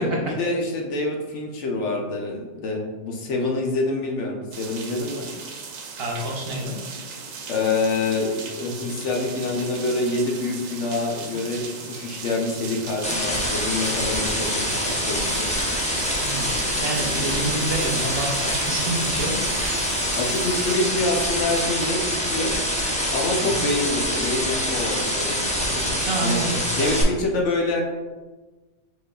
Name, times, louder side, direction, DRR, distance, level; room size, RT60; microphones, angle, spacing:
voice 1, 0.0-5.3 7.5-15.5 20.2-22.5 23.1-26.4 26.8-27.8, left 2 dB, 65° left, 0 dB, 1.0 m, -26 dB
sound 1, 4.5-20.8, right 4 dB, 85° right, 1.1 m, -37 dB
voice 2, 6.0-6.8 16.2-16.5 16.8-19.4 23.4-23.7 26.1-26.9, right 2 dB, 50° right, -1 dB, 0.9 m, -28 dB
sound 2, 13.0-27.0, equal, 10° left, 0.5 m, -25 dB
5.2 x 4.0 x 2.3 m, 1.2 s
omnidirectional pair, 1.4 m